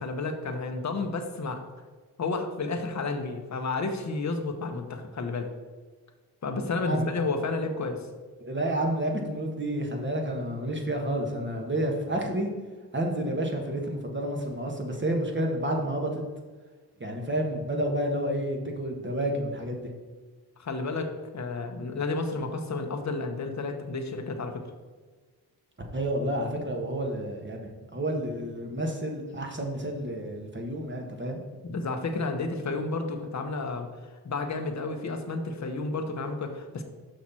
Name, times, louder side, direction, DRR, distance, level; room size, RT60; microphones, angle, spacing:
voice 1, 0.0-1.6 2.2-5.5 6.4-8.0 20.6-24.6 31.6-33.9 34.2-36.8, left 3 dB, 45° left, 5 dB, 1.0 m, -31 dB
voice 2, 8.4-12.5 12.9-16.2 17.0-19.9 25.9-31.4, right 1 dB, 30° right, 2 dB, 1.5 m, -30 dB
6.2 x 5.7 x 4.3 m, 1.4 s
cardioid pair, 65°, 40 cm